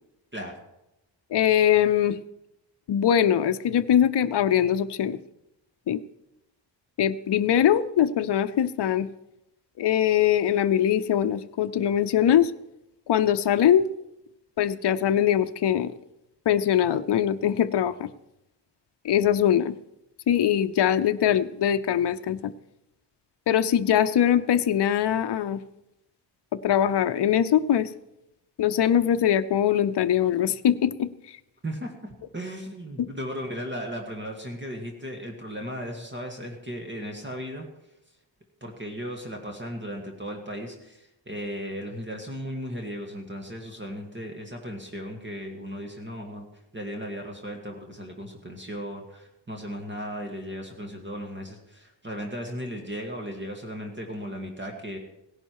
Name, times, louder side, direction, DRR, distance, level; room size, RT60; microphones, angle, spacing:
voice 1, 1.3-2.2 2.9-5.2 5.9-6.0 7.0-9.1 9.8-12.5 13.1-13.9 14.6-15.9 16.5-18.1 19.0-19.7 20.3-22.5 23.5-25.6 26.5-27.9 28.6-31.1 33.0-33.1, left 10 dB, 65° left, 10 dB, 0.6 m, -22 dB
voice 2, 31.6-37.7 38.6-46.5 46.7-55.0, equal, 25° right, 2 dB, 1.9 m, -36 dB
17.0 x 11.0 x 4.7 m, 0.89 s
wide cardioid pair, 110°, 45 cm